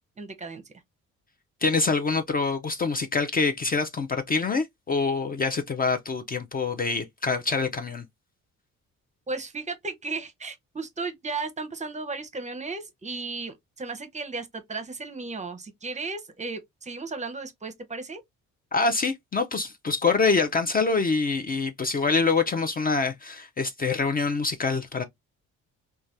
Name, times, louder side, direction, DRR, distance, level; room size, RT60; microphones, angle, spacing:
voice 1, 0.2-0.6 9.3-18.2, right 3 dB, 25° right, 0.6 m, -35 dB
voice 2, 1.6-8.0 18.7-25.0, left 4 dB, 30° left, 0.4 m, -25 dB
3.1 x 2.3 x 2.5 m
cardioid pair, 90°, 30 cm